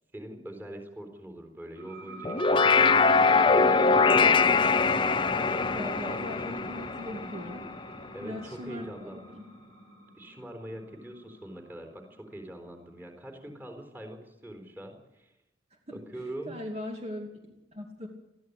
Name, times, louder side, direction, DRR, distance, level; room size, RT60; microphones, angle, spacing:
voice 1, 0.1-4.5 6.1-6.2 8.1-9.4 10.2-15.3 15.9-16.5, right 1 dB, 10° right, 5 dB, 4.2 m, -43 dB
sound 1, 1.8-13.0, right 1 dB, 85° right, 5.6 m, -42 dB
sound 2, 2.2-7.8, left 4 dB, 25° left, 0.6 m, -23 dB
voice 2, 4.1-4.6 5.3-7.7 8.2-9.4 15.9-16.0 16.5-18.1, left 1 dB, 35° right, 1 dB, 2.6 m, -40 dB
21.5 x 14.5 x 8.5 m, 0.92 s
head